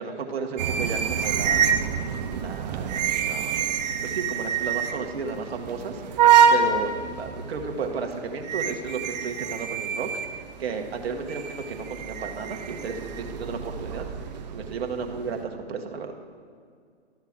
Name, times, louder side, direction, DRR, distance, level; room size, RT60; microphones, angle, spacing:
voice 1, 0.0-1.8 2.3-3.7 4.0-6.9 7.2-14.0 14.5-16.1, right 5 dB, 60° right, 3 dB, 1.3 m, -33 dB
sound 1, 0.6-15.4, right 7 dB, 40° right, 0.7 m, -26 dB
13.0 x 8.0 x 3.6 m, 2.1 s
hypercardioid pair, 130°, 34 cm